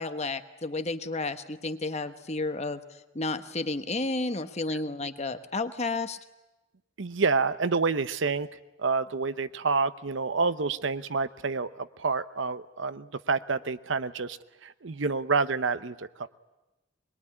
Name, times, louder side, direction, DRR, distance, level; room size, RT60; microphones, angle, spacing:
voice 1, 0.0-2.8 3.1-6.2, left 3 dB, 35° left, 10 dB, 1.1 m, -31 dB
voice 2, 7.0-8.5 8.8-16.3, right 4 dB, 65° right, 14 dB, 0.8 m, -28 dB
22.0 x 22.0 x 9.9 m, 1.0 s
head